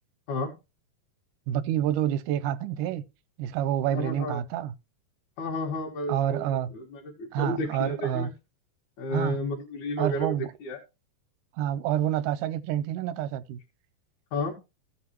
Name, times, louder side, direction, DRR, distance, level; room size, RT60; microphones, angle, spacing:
voice 1, 1.5-3.0 3.4-4.7 6.1-6.7 7.3-8.3 9.1-9.4 10.0-10.5 11.6-13.6, right 11 dB, 80° right, 2.2 m, -28 dB
voice 2, 3.9-4.4 5.4-8.3 9.0-10.3 10.6-10.8 14.3-14.5, left 1 dB, 70° left, 3.0 m, -32 dB
16.0 x 5.8 x 3.0 m
omnidirectional pair, 3.6 m